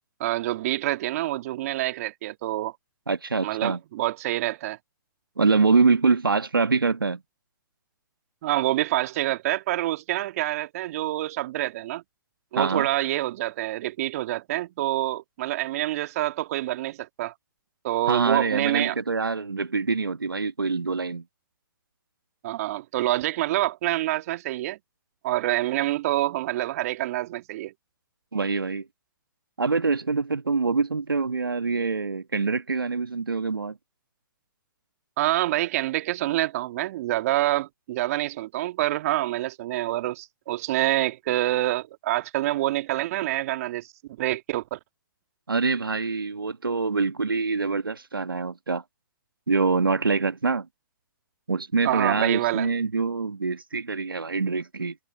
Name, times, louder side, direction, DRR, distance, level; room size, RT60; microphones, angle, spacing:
voice 1, 0.2-2.7 3.4-4.8 8.4-12.0 12.5-17.3 17.8-19.0 22.4-24.8 25.2-27.7 35.2-43.9 44.2-44.8 51.8-52.7, right 15 dB, 45° right, 1.7 m, -26 dB
voice 2, 3.1-3.8 5.4-7.2 12.5-12.9 18.1-21.2 28.3-28.9 29.6-33.8 45.5-48.8 49.5-50.7 51.5-54.9, right 4 dB, 85° right, 1.5 m, -25 dB
figure-of-eight pair, 130°, 11 cm